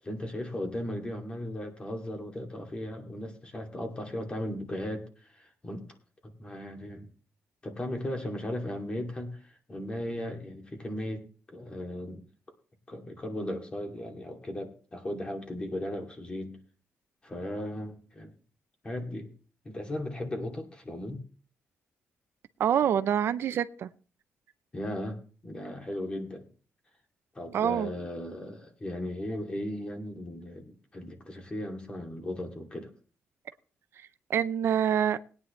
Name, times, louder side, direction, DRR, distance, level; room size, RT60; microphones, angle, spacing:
voice 1, 0.0-5.8 6.2-7.1 7.6-12.2 12.9-16.6 17.2-18.3 18.8-19.3 19.6-21.2 24.7-26.5 27.3-32.9, left 1 dB, 20° left, 3 dB, 2.5 m, -37 dB
voice 2, 22.6-23.9 27.5-27.9 34.0-35.2, right 9 dB, 65° right, 12 dB, 0.6 m, -26 dB
20.5 x 9.6 x 3.2 m, 0.39 s
cardioid pair, 135°, 5 cm